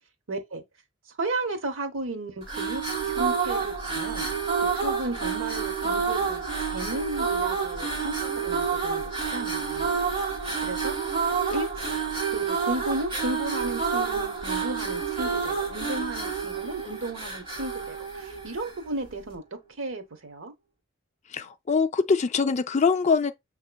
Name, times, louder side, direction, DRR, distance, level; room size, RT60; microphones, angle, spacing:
voice 1, 0.3-0.6 1.2-4.3 4.8-9.9 10.6-11.0 11.5-11.9 12.3-19.4 19.8-20.5, right 2 dB, 85° right, 0.9 m, -34 dB
sound 1, 2.4-18.9, right 5 dB, 30° right, 2.4 m, -29 dB
voice 2, 21.3-23.3, left 5 dB, 35° left, 0.4 m, -23 dB
6.7 x 2.9 x 2.2 m
head